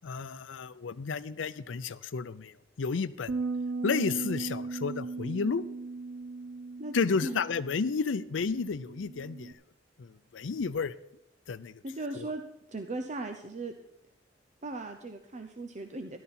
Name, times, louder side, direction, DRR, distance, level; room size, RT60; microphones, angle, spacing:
voice 1, 0.0-3.4 3.8-5.7 6.9-9.6 10.0-10.9 11.5-11.8 12.1-12.3, left 5 dB, 85° left, 15 dB, 0.5 m, -32 dB
sound 1, 3.3-9.5, right 3 dB, 80° right, 0.6 m, -37 dB
voice 2, 11.8-12.4 12.7-13.7 14.6-16.2, right 2 dB, 40° right, 6 dB, 0.8 m, -37 dB
13.5 x 12.0 x 4.3 m, 0.85 s
head